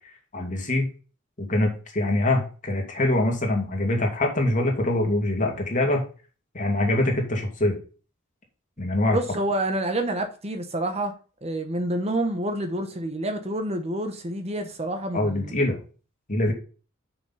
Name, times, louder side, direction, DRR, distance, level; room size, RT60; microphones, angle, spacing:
voice 1, 0.3-0.9 1.4-6.0 6.5-7.8 8.8-9.2 15.1-15.8 16.3-16.5, left 1 dB, 40° left, 2.5 m, -24 dB
voice 2, 9.1-11.1 11.4-15.5, right 1 dB, 30° right, 1.1 m, -28 dB
6.6 x 6.2 x 5.6 m
head